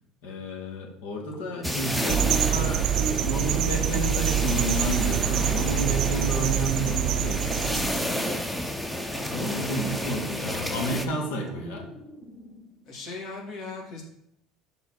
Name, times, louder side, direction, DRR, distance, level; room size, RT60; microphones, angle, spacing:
voice 1, 0.2-8.4 9.3-11.9, right 1 dB, 90° left, 1 dB, 1.8 m, -31 dB
sound 1, 1.3-2.3 2.8-5.2 5.7-8.1 8.6-11.0 11.5-13.0, left 3 dB, 30° left, 1.6 m, -47 dB
sound 2, 1.6-11.1, equal, 5° left, 0.6 m, -31 dB
sound 3, 2.1-8.0, right 11 dB, 60° right, 0.4 m, -26 dB
voice 2, 9.1-10.6 12.9-14.0, left 3 dB, 55° left, -1 dB, 2.3 m, -40 dB
7.1 x 4.0 x 4.6 m, 0.75 s
cardioid pair, 135°, 0 cm